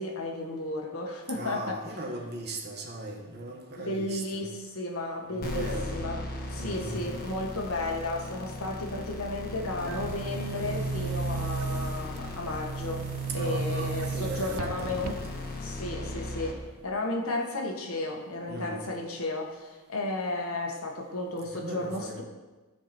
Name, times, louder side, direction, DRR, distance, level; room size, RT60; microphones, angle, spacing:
voice 1, 0.0-1.8 3.8-13.1 13.3-15.2 15.6-22.2, left 2 dB, 75° left, 2 dB, 1.6 m, -33 dB
voice 2, 1.3-4.4 5.3-6.0 6.6-7.1 13.3-15.2 18.5-18.9 21.5-22.2, right 1 dB, 50° right, 1 dB, 1.6 m, -38 dB
sound 1, 5.4-16.5, left 1 dB, 45° left, 1.5 m, -37 dB
Boom, 9.8-15.6, right 5 dB, 85° right, 0.4 m, -35 dB
14.5 x 4.9 x 4.5 m, 1.2 s
head